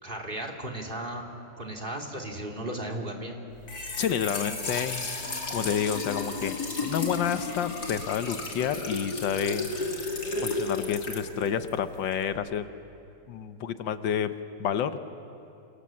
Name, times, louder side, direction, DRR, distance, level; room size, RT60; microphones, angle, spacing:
voice 1, 0.0-1.3 1.6-3.4, right 1 dB, 25° right, 3 dB, 2.9 m, -35 dB
Trickle dribble / Fill (with liquid), 3.5-12.3, left 3 dB, 60° left, 3.3 m, -33 dB
voice 2, 4.0-9.9 10.4-12.7 13.3-14.3 14.6-15.0, left 8 dB, 80° left, 11 dB, 1.6 m, -30 dB
29.0 x 27.5 x 7.6 m, 2.8 s
omnidirectional pair, 2.0 m